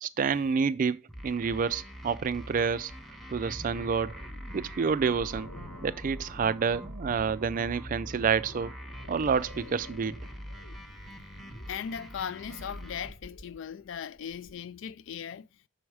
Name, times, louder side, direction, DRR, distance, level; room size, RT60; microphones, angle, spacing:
voice 1, 0.0-2.9 3.3-4.2 4.5-5.5 5.8-8.7 9.1-10.2, right 6 dB, 40° right, 0.3 m, -28 dB
sound 1, 1.1-13.1, equal, ahead, 0.8 m, -44 dB
sound 2, 3.4-14.6, left 1 dB, 85° left, 1.4 m, -51 dB
voice 2, 11.7-15.5, left 8 dB, 60° left, 0.3 m, -38 dB
6.2 x 4.6 x 4.8 m
head